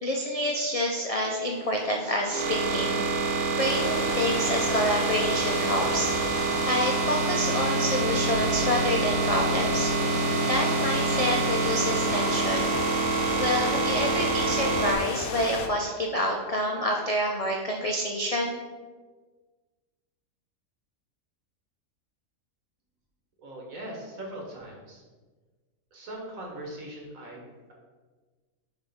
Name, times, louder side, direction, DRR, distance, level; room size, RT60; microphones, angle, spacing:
voice 1, 0.0-3.0 3.6-6.1 6.7-12.7 13.4-18.6, equal, 55° left, 0 dB, 0.4 m, -28 dB
sound 1, 1.5-14.9, right 3 dB, 90° right, 1.4 m, -27 dB
sound 2, 3.6-15.7, left 5 dB, 80° left, 1.1 m, -35 dB
voice 2, 23.4-25.0 25.9-27.7, right 1 dB, 70° right, -1 dB, 1.8 m, -40 dB
6.7 x 3.1 x 5.4 m, 1.4 s
omnidirectional pair, 1.5 m